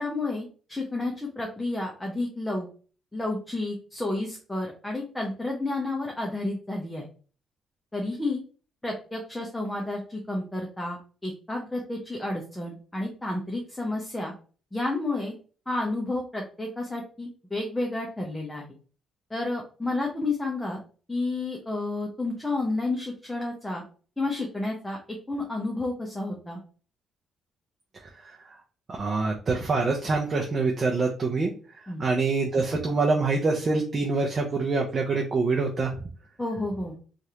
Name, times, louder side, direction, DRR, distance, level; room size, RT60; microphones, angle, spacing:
voice 1, 0.0-2.7 3.1-7.0 7.9-8.4 8.8-14.3 14.7-15.3 15.7-18.7 19.3-20.8 21.1-23.8 24.2-25.0 25.3-26.6 31.9-32.0 36.4-37.0, left 2 dB, 10° left, -1 dB, 0.7 m, -31 dB
voice 2, 28.9-31.5 32.0-35.9, right 3 dB, 40° right, -1 dB, 0.6 m, -25 dB
3.1 x 2.5 x 2.8 m, 0.39 s
cardioid pair, 90°, 0 cm